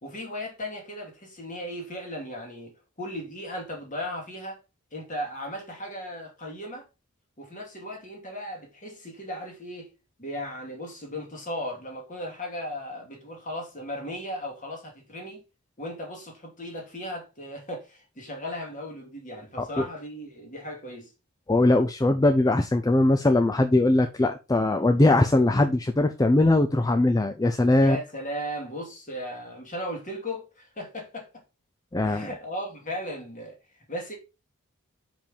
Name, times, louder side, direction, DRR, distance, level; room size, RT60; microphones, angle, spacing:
voice 1, 0.0-4.6 4.9-6.8 7.4-9.9 10.2-15.4 15.8-21.1 27.8-31.4 32.0-33.6 33.9-34.2, equal, 35° left, 2.4 m, -36 dB
voice 2, 21.5-28.0 31.9-32.3, left 2 dB, 15° left, 0.4 m, -21 dB
5.5 x 5.1 x 5.1 m
head